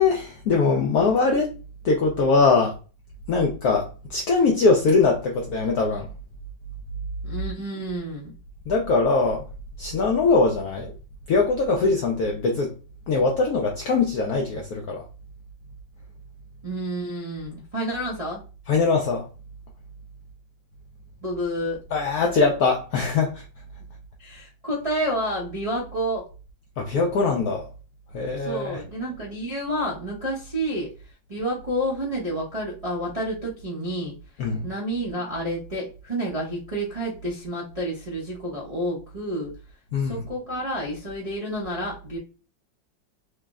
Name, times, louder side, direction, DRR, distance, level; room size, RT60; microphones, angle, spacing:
voice 1, 0.0-1.5 1.8-2.8 3.3-6.1 8.7-9.5 9.8-10.9 11.3-12.7 13.1-15.0 18.7-19.3 21.9-23.4 26.8-27.6 28.1-28.8 34.4-34.7 39.9-40.2, left 4 dB, 70° left, 0.9 m, -22 dB
voice 2, 7.2-8.3 16.6-18.4 21.2-21.8 24.2-26.2 28.4-30.9 31.3-34.1 34.6-39.5 40.0-42.2, right 1 dB, 50° right, 0.4 m, -29 dB
3.2 x 2.0 x 3.5 m
omnidirectional pair, 2.0 m